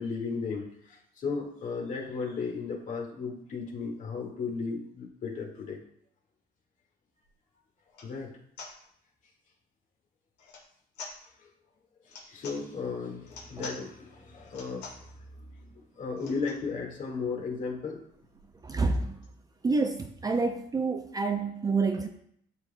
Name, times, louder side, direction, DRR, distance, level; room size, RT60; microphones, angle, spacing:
voice 1, 0.0-5.8 8.0-8.4 11.4-11.5 12.1-14.9 15.5-15.7 16.0-18.0, left 4 dB, 50° left, 0 dB, 1.8 m, -35 dB
sound 1, 7.2-7.3 7.9-8.1 8.6-8.7 10.4-10.7 10.9-11.2 12.0-12.6 13.2-13.8 14.4-15.1 16.1-16.6 17.2-17.3 17.4-17.6 17.9-19.3, left 3 dB, 80° left, 1.8 m, -46 dB
voice 2, 18.6-19.2 19.6-22.1, right 3 dB, 20° right, 6 dB, 0.5 m, -28 dB
12.0 x 4.1 x 2.2 m, 0.68 s
cardioid pair, 110°, 17 cm